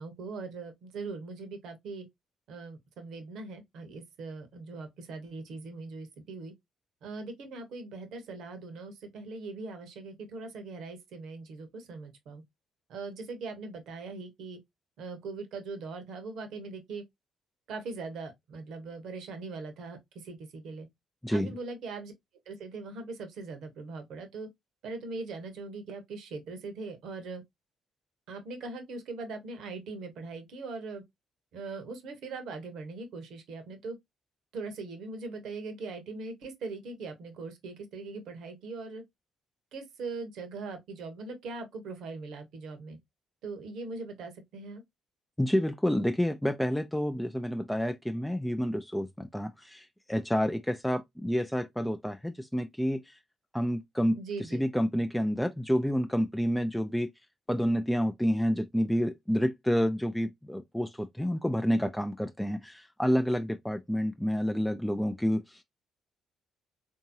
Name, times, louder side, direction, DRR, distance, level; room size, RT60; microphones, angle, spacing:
voice 1, 0.0-2.1 2.5-6.5 7.0-12.4 12.9-14.6 15.0-17.0 17.7-20.9 21.3-22.1 22.5-24.5 24.8-27.4 28.3-31.0 31.5-34.0 34.5-39.0 39.7-43.0 43.4-44.8 54.1-54.6, right 3 dB, 65° right, 0.9 m, -40 dB
voice 2, 21.2-21.6 45.4-53.2 53.5-57.1 57.5-65.6, equal, 5° left, 0.3 m, -29 dB
3.6 x 2.7 x 2.7 m
figure-of-eight pair, 45°, 0 cm